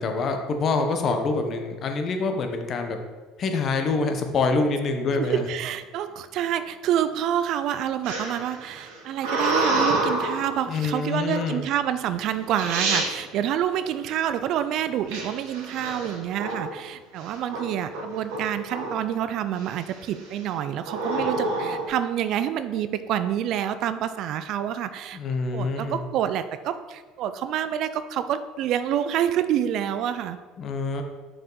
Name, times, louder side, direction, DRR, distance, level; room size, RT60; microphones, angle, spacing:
voice 1, 0.0-3.0 3.4-5.5 10.7-11.6 25.1-26.0 30.6-31.0, left 3 dB, 40° left, 5 dB, 0.8 m, -26 dB
voice 2, 5.2-25.2 25.5-30.4, right 10 dB, 55° right, 12 dB, 0.4 m, -27 dB
sound 1, 8.0-10.6 11.3-11.7 12.3-12.4 12.6-13.1 15.1-16.8 17.2-17.6 17.9-19.1 19.6-20.0 20.8-21.9, right 2 dB, 90° right, 1.5 m, -27 dB
6.2 x 4.8 x 3.9 m, 1.3 s
cardioid pair, 125°, 0 cm